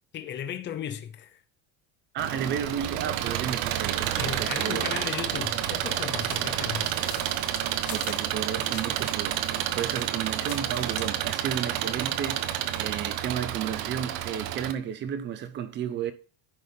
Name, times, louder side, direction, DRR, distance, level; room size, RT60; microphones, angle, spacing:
voice 1, 0.1-1.4 4.2-6.9, left 9 dB, 25° left, 0.7 m, -35 dB
voice 2, 2.1-4.8 7.9-16.1, right 9 dB, 25° right, 0.3 m, -33 dB
Engine, 2.2-14.7, right 11 dB, 85° right, 1.0 m, -30 dB
sound 1, 6.3-9.2 9.4-11.2, left 11 dB, 85° left, 1.9 m, -44 dB
10.5 x 4.1 x 5.1 m
cardioid pair, 175°, 47 cm